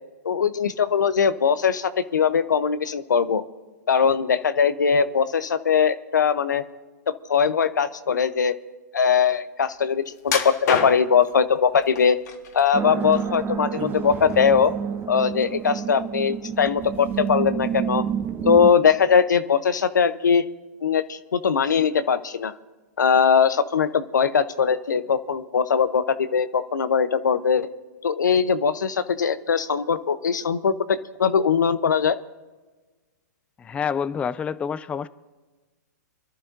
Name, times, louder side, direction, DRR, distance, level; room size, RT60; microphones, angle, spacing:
voice 1, 0.2-3.4 3.9-6.6 7.1-8.5 8.9-12.2 12.5-14.7 15.1-18.1 18.4-20.4 20.8-22.5 23.0-27.7 28.0-32.2, left 6 dB, 90° left, 13 dB, 0.7 m, -21 dB
sound 1, 10.2-11.3 12.0-12.6 13.0-13.9 14.3-14.5 15.0-15.1, left 6 dB, 70° left, 1.8 m, -28 dB
sound 2, 12.7-18.7, right 8 dB, 20° right, 0.9 m, -29 dB
voice 2, 33.6-35.1, left 7 dB, 10° left, 16 dB, 0.3 m, -27 dB
25.5 x 12.0 x 2.6 m, 1.3 s
hypercardioid pair, 130°, 10 cm